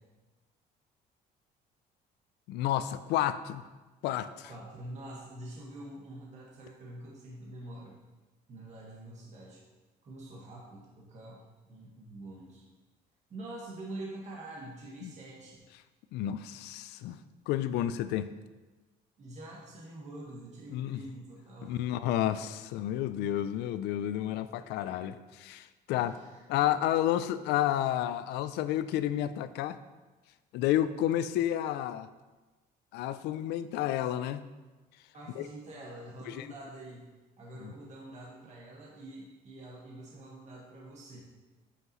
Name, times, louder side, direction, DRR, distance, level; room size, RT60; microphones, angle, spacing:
voice 1, 2.5-3.7 4.0-4.5 15.0-15.1 16.1-17.2 17.5-18.3 20.7-21.0 21.6-26.1 26.5-29.8 30.5-32.1 32.9-34.4 35.4-35.5 36.3-36.5 37.6-37.7, left 12 dB, 85° left, 13 dB, 0.4 m, -31 dB
voice 2, 4.4-8.0 8.5-9.6 10.0-11.4 11.7-12.6 13.3-15.6 19.2-22.0 25.9-26.4 35.1-37.1 37.4-41.2, right 1 dB, 45° right, -4 dB, 1.6 m, -46 dB
8.1 x 5.6 x 3.0 m, 1.2 s
cardioid pair, 110°, 17 cm